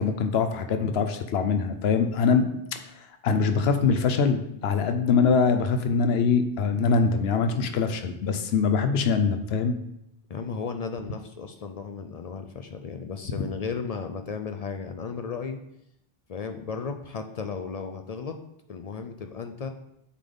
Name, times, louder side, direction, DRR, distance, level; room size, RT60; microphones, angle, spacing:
voice 1, 0.0-2.5 2.7-9.7, left 5 dB, 80° left, 8 dB, 0.8 m, -23 dB
voice 2, 10.3-15.6 16.3-18.4 18.7-19.7, left 5 dB, 55° left, 6 dB, 0.4 m, -34 dB
8.3 x 3.8 x 3.5 m, 0.79 s
omnidirectional pair, 1.0 m